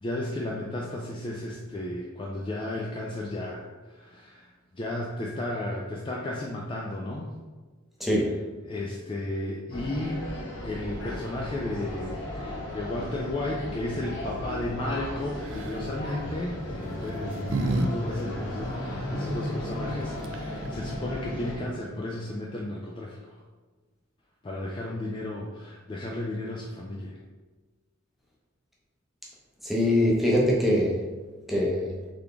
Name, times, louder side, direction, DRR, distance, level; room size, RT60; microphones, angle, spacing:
voice 1, 0.0-7.3 8.6-10.3 10.6-23.4 24.4-27.2, left 1 dB, 25° left, -2 dB, 0.3 m, -34 dB
voice 2, 8.0-8.3 29.6-31.0 31.5-31.9, left 1 dB, ahead, -4 dB, 0.7 m, -23 dB
sound 1, 9.7-21.6, left 1 dB, 60° left, 1.0 m, -35 dB
sound 2, 15.4-15.8 16.8-17.9 18.2-18.3 19.9-20.0 20.2-20.7, right 2 dB, 65° right, 0.4 m, -30 dB
3.7 x 3.5 x 3.4 m, 1.3 s
head